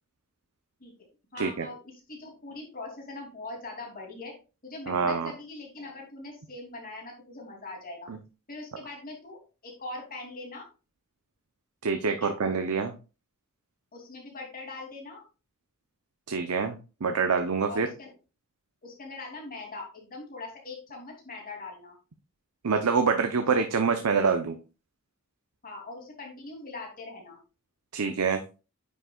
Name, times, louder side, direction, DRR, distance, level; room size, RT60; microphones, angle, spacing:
voice 1, 1.3-1.8 2.1-4.3 4.6-8.1 8.5-10.7 12.2-12.3 13.9-15.2 17.7-18.1 18.8-22.0 25.6-27.4, left 2 dB, 40° left, 0 dB, 2.9 m, -41 dB
voice 2, 4.9-5.3 8.1-8.2 11.8-12.9 16.3-16.8 17.0-17.9 22.6-24.6 27.9-28.4, right 5 dB, 80° right, 6 dB, 0.7 m, -26 dB
9.4 x 6.4 x 2.4 m, 0.32 s
head